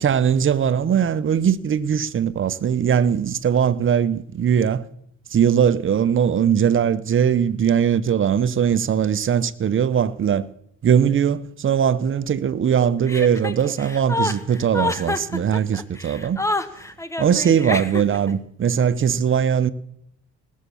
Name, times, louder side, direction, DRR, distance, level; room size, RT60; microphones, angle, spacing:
voice 1, 0.0-4.8 5.3-10.5 10.8-16.4 17.2-19.7, right 8 dB, 40° right, 0.8 m, -20 dB
Chuckle chortle, 13.1-18.3, left 2 dB, 10° left, 1.0 m, -27 dB
18.5 x 7.5 x 7.0 m
cardioid pair, 90°, 30 cm